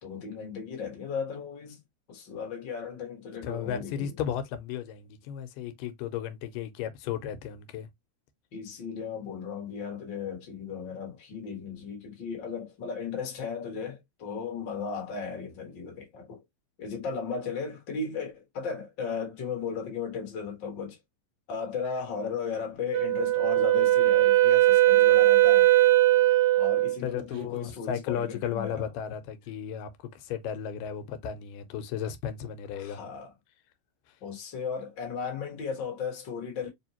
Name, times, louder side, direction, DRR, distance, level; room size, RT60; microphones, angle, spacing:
voice 1, 0.0-1.8 2.1-4.1 8.5-16.4 16.8-21.0 21.5-25.7 26.6-28.9 32.8-33.3 34.2-36.7, left 5 dB, 45° left, 1.7 m, -36 dB
voice 2, 3.4-7.9 27.0-33.0, left 9 dB, 90° left, 2.3 m, -34 dB
Wind instrument woodwind instrument, 22.9-27.0, right 15 dB, 80° right, 1.6 m, -20 dB
4.8 x 2.7 x 2.8 m
omnidirectional pair, 3.7 m